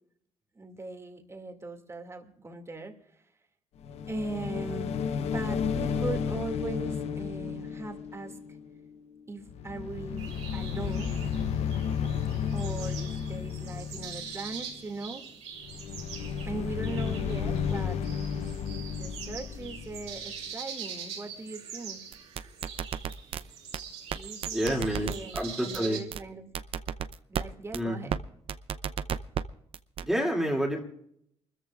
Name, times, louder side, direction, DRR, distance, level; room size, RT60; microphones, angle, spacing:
voice 1, 0.6-2.9 4.1-4.9 5.3-8.4 9.3-11.1 12.5-15.2 16.4-18.0 18.9-22.0 24.1-26.5 27.3-28.1, right 3 dB, 25° right, 4 dB, 2.3 m, -39 dB
sound 1, 3.8-9.2 9.4-14.7 15.6-20.5, left 7 dB, 75° left, 0.8 m, -33 dB
sound 2, 10.2-26.0, right 7 dB, 85° right, 3.3 m, -43 dB
sound 3, 22.1-23.4 23.7-23.8 24.1-24.2 24.4-25.4 25.7-25.8 26.1-26.2 26.5-27.4 27.7-27.8 28.1-28.2 28.5-29.4 29.7-30.0, right 8 dB, 60° right, 0.6 m, -32 dB
voice 2, 24.5-26.0 27.7-28.1 30.0-30.8, equal, 5° right, 0 dB, 2.6 m, -29 dB
28.5 x 14.0 x 2.4 m, 0.71 s
cardioid pair, 100°, 11 cm